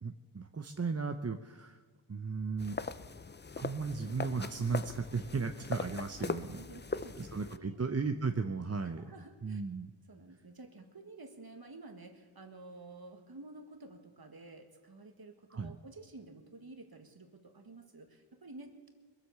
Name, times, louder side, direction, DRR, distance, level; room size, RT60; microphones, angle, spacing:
voice 1, 0.0-1.8 2.1-2.8 3.6-6.6 7.2-9.0 9.4-9.9 15.5-15.8, right 4 dB, 30° right, 6 dB, 0.8 m, -35 dB
sound 1, 2.6-7.6, left 4 dB, 20° left, 0.5 m, -40 dB
voice 2, 6.2-7.8 9.0-9.6 10.1-18.9, right 2 dB, 45° right, 5 dB, 1.9 m, -51 dB
21.5 x 8.1 x 6.8 m, 1.4 s
cardioid pair, 50°, 49 cm